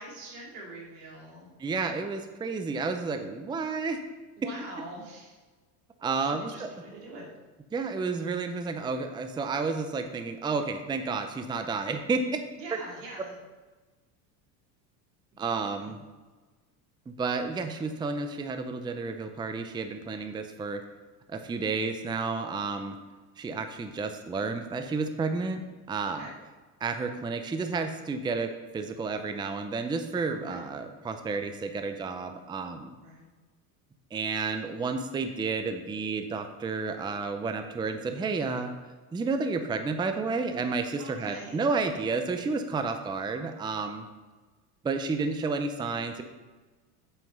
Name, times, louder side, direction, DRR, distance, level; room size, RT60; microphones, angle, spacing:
voice 1, 0.0-1.5 4.4-5.4 6.2-7.3 12.6-13.3 15.3-15.9 26.1-26.3 30.4-30.6 33.0-33.3 41.0-41.7, right 2 dB, 85° right, -3 dB, 3.0 m, -44 dB
voice 2, 1.6-4.0 6.0-6.7 7.7-12.4 15.4-16.0 17.1-20.8 21.3-23.0 23.4-26.3 26.8-33.0 34.1-38.7 39.1-44.1 44.8-46.2, right 4 dB, 10° right, 7 dB, 0.5 m, -31 dB
7.7 x 5.7 x 5.4 m, 1.3 s
supercardioid pair, 105°, 46 cm